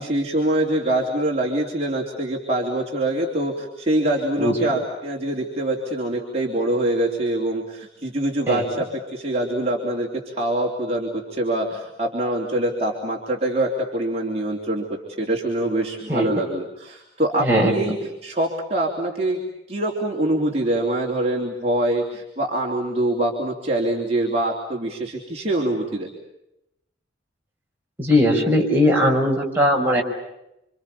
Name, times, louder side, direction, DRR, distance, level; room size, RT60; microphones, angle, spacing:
voice 1, 0.0-14.8 15.2-19.4 19.7-26.1, right 1 dB, 30° right, -2 dB, 3.5 m, -24 dB
voice 2, 4.4-4.7 8.5-8.6 16.1-16.3 17.4-17.7 28.0-30.0, left 1 dB, 10° right, -2 dB, 5.7 m, -19 dB
28.5 x 26.5 x 7.1 m, 0.86 s
head